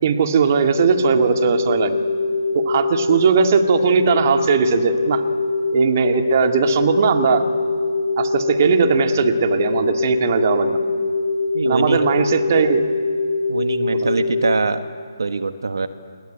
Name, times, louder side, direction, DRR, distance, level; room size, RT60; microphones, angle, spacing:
voice 1, 0.0-2.0 2.5-5.2 5.7-7.4 8.2-10.8 11.6-12.8 14.0-14.2, right 6 dB, 40° right, 6 dB, 2.2 m, -19 dB
sound 1, 0.8-14.6, left 3 dB, 40° left, 3.7 m, -22 dB
voice 2, 11.5-12.0 13.5-14.9 15.2-15.9, right 4 dB, 70° right, 9 dB, 1.5 m, -23 dB
29.0 x 22.0 x 9.3 m, 2.3 s
figure-of-eight pair, 155°, 2 cm